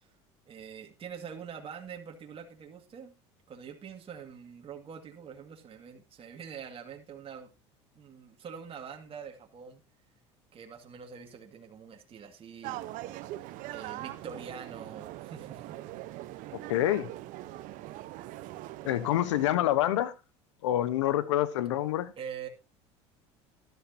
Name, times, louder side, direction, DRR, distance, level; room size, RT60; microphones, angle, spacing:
voice 1, 0.5-3.1 3.5-7.5 8.0-9.8 10.5-12.8 13.3-13.4 13.7-15.8 22.2-22.5, right 7 dB, 40° right, 2.2 m, -44 dB
sound 1, 12.6-19.6, right 15 dB, 60° right, 1.0 m, -42 dB
voice 2, 16.5-17.1 18.8-20.1 20.6-22.1, left 13 dB, 85° left, 1.1 m, -27 dB
13.0 x 11.5 x 2.8 m
hypercardioid pair, 85°, 15 cm